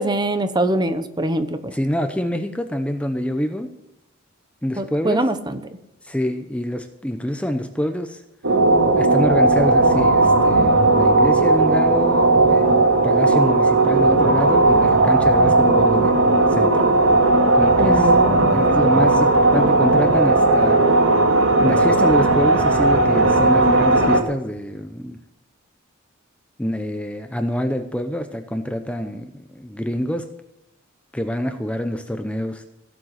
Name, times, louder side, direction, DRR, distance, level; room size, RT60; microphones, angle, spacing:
voice 1, 0.0-1.7 4.8-5.6 17.8-18.9, right 1 dB, 20° right, 10 dB, 1.0 m, -23 dB
voice 2, 1.7-3.7 4.6-5.2 6.0-8.2 9.0-12.8 13.0-16.8 17.5-20.8 21.6-25.2 26.6-30.3 31.1-32.6, equal, 5° left, 7 dB, 0.7 m, -26 dB
sound 1, 8.4-24.2, right 2 dB, 90° right, 2.3 m, -16 dB
16.5 x 7.6 x 7.9 m, 0.84 s
head